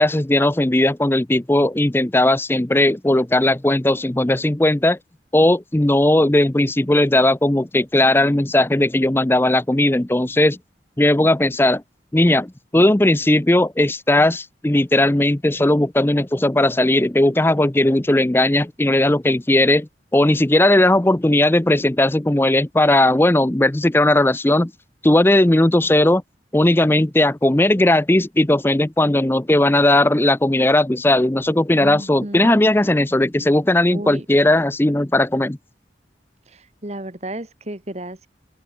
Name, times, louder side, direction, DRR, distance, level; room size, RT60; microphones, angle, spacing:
voice 1, 0.0-5.0 5.3-10.6 11.0-11.8 12.1-24.7 25.0-26.2 26.5-35.6, left 1 dB, 10° left, 0.6 m, -17 dB
voice 2, 31.8-32.6 33.9-34.3 36.4-38.3, right 1 dB, 35° right, 2.1 m, -33 dB
open air
head